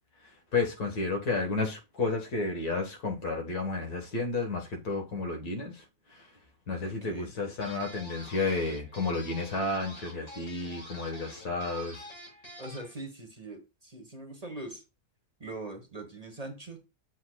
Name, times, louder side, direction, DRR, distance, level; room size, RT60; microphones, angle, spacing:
voice 1, 0.5-5.8 6.7-12.1, left 3 dB, 85° left, 2.0 m, -31 dB
voice 2, 6.8-7.3 12.6-14.8 15.4-16.8, right 2 dB, 25° right, 1.2 m, -42 dB
sound 1, 7.6-12.9, left 1 dB, 40° left, 2.6 m, -47 dB
7.2 x 6.5 x 2.3 m
omnidirectional pair, 1.6 m